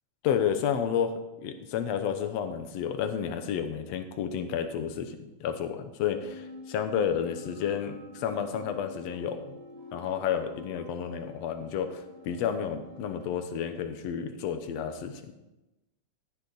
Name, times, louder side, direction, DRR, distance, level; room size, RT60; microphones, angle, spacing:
voice 1, 0.2-1.1 1.4-9.6 9.9-15.3, left 8 dB, 65° left, 7 dB, 1.8 m, -31 dB
sound 1, 6.2-13.2, left 1 dB, 15° left, 2.3 m, -48 dB
15.0 x 8.6 x 4.1 m, 0.99 s
omnidirectional pair, 3.8 m